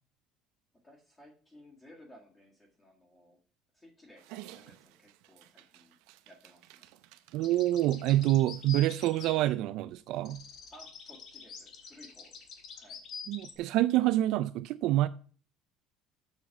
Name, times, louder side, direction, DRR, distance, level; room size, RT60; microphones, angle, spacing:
voice 1, 0.8-3.4 3.7-4.2 4.5-6.0 6.3-6.9 7.2-7.4 10.7-13.0, equal, 15° left, 1.9 m, -57 dB
Dog, 4.2-9.5, right 14 dB, 85° right, 0.7 m, -54 dB
voice 2, 7.3-10.4 13.3-15.1, right 15 dB, 60° right, 0.3 m, -27 dB
sound 1, 7.4-9.9 10.2-13.5, left 6 dB, 45° left, 1.5 m, -47 dB
7.2 x 6.3 x 5.8 m
cardioid pair, 170°, 0 cm